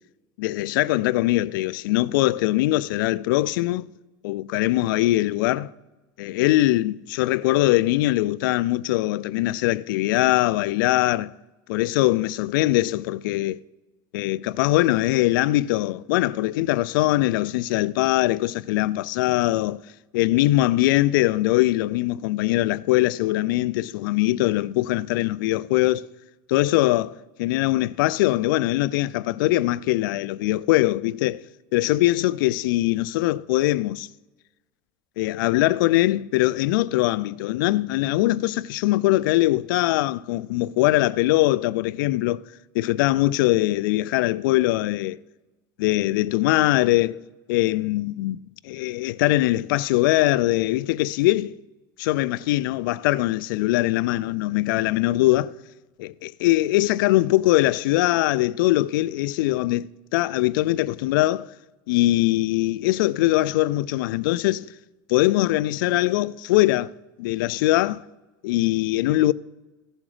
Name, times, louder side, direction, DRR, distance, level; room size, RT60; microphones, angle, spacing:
voice 1, 0.4-3.8 4.2-5.7 6.2-11.3 11.7-13.6 14.1-19.8 20.1-26.1 26.5-31.4 31.7-34.1 35.2-42.4 42.7-45.2 45.8-47.2 47.5-48.4 48.6-51.6 52.0-55.5 56.0-59.9 60.1-61.5 61.9-64.7 65.1-66.9 67.2-68.0 68.4-69.3, left 17 dB, 80° left, 0.4 m, -22 dB
15.0 x 7.2 x 5.0 m
supercardioid pair, 135°, 11 cm